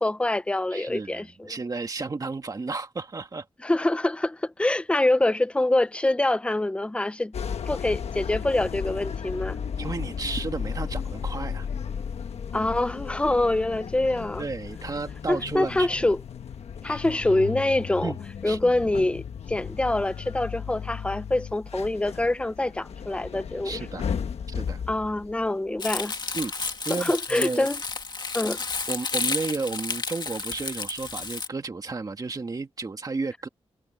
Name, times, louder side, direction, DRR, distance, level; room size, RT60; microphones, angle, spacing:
voice 1, 0.0-1.5 3.6-7.3 7.7-9.6 12.5-14.4 15.3-16.2 16.8-18.1 18.4-23.8 24.9-26.1 26.9-27.8 28.3-28.6, left 2 dB, 10° left, 0.6 m, -25 dB
voice 2, 0.7-3.5 9.8-11.7 14.4-16.1 16.8-17.0 18.0-18.2 18.5-18.6 23.6-24.1 24.5-24.8 26.3-27.7 28.9-33.5, right 3 dB, 35° right, 2.0 m, -32 dB
sound 1, 7.3-26.0 26.4-26.7, left 7 dB, 80° left, 1.3 m, -35 dB
Crumpling crinkling, 25.8-31.5, left 4 dB, 45° left, 2.1 m, -31 dB
wide cardioid pair, 120°, 11 cm